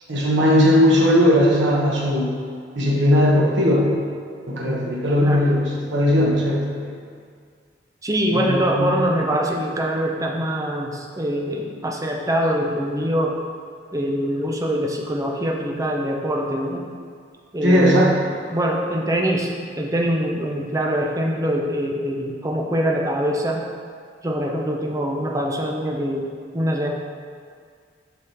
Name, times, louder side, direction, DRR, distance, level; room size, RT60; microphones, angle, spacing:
voice 1, 0.1-2.3 2.7-3.9 4.5-5.6 5.9-6.9 8.3-9.0 17.6-18.1, equal, 80° right, -3 dB, 1.4 m, -18 dB
voice 2, 8.0-13.4 13.9-16.9 17.5-18.1 18.5-23.6 24.2-26.3 26.5-26.9, equal, 20° right, 1 dB, 0.6 m, -23 dB
6.8 x 6.0 x 3.5 m, 2.1 s
head